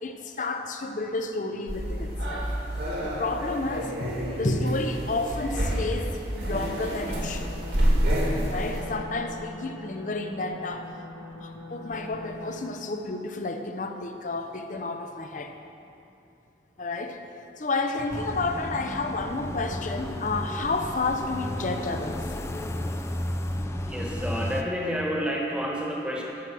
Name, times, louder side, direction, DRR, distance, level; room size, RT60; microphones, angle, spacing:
voice 1, 0.0-2.5 3.0-7.5 8.5-10.9 11.4-15.5 16.8-17.2 17.6-22.2, left 2 dB, 45° left, 6 dB, 0.7 m, -31 dB
sound 1, 1.7-8.8, equal, 75° right, 2.4 m, -28 dB
sound 2, 7.1-12.9, left 2 dB, 80° left, 1.1 m, -42 dB
sound 3, 18.1-24.6, left 1 dB, 15° left, 0.4 m, -33 dB
voice 2, 23.9-26.2, equal, 5° right, -2 dB, 1.3 m, -29 dB
13.5 x 6.0 x 6.1 m, 2.8 s
head